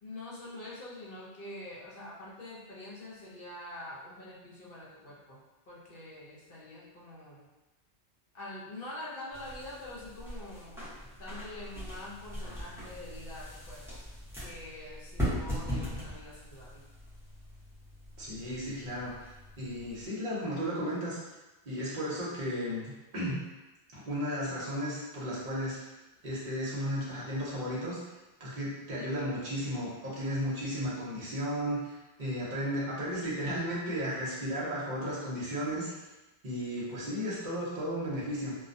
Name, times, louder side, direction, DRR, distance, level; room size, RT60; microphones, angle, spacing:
voice 1, 0.0-7.5 8.3-10.9 11.2-14.0 14.4-16.8, left 1 dB, 60° left, -6 dB, 0.8 m, -45 dB
sound 1, 9.3-20.1, equal, 5° right, 0.6 m, -40 dB
voice 2, 18.2-19.1 19.6-21.2 21.6-23.4 23.9-25.8 26.2-28.0 28.4-35.9 36.4-38.5, equal, 45° right, -6 dB, 0.8 m, -34 dB
2.3 x 2.1 x 2.5 m, 1.1 s
omnidirectional pair, 1.1 m